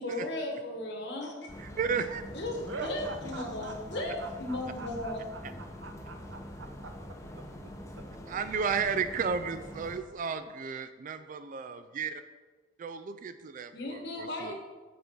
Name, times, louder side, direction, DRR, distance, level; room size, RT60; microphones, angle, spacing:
voice 1, 0.0-1.5 2.3-5.2 13.7-14.5, left 1 dB, 65° left, 0 dB, 1.5 m, -36 dB
sound 1, 1.5-10.0, equal, 15° left, 0.8 m, -44 dB
voice 2, 1.6-2.2 8.3-12.2 12.8-14.5, right 6 dB, 45° right, 11 dB, 0.3 m, -33 dB
voice 3, 2.6-7.0, right 3 dB, 80° right, 6 dB, 0.8 m, -44 dB
7.6 x 4.5 x 6.5 m, 1.3 s
head